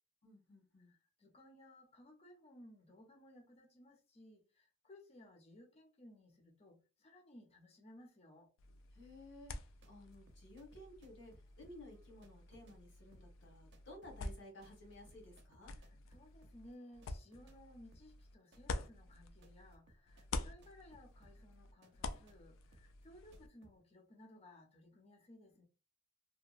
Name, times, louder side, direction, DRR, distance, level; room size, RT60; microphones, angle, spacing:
voice 1, 0.2-0.9 8.9-9.5 9.8-15.7, left 1 dB, 65° left, 1.2 m, -56 dB
voice 2, 0.8-8.5 15.7-25.6, left 1 dB, 30° left, 0.6 m, -60 dB
sound 1, 8.6-19.8 20.1-23.5, left 3 dB, 80° left, 0.3 m, -48 dB
sound 2, 9.4-17.6 17.9-23.8, right 1 dB, 60° right, 0.6 m, -68 dB
2.9 x 2.1 x 2.4 m
head